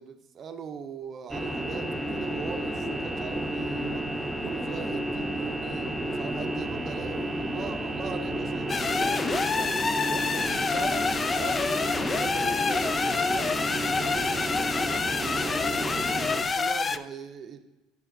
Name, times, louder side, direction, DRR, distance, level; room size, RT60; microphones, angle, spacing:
voice 1, 0.0-11.6 11.9-17.6, right 6 dB, 45° right, 9 dB, 0.6 m, -41 dB
sound 1, 1.3-16.4, right 1 dB, 10° right, 0.8 m, -31 dB
sound 2, 8.7-17.0, left 5 dB, 30° left, 0.3 m, -28 dB
10.5 x 5.8 x 2.6 m, 1.1 s
supercardioid pair, 80°, 0 cm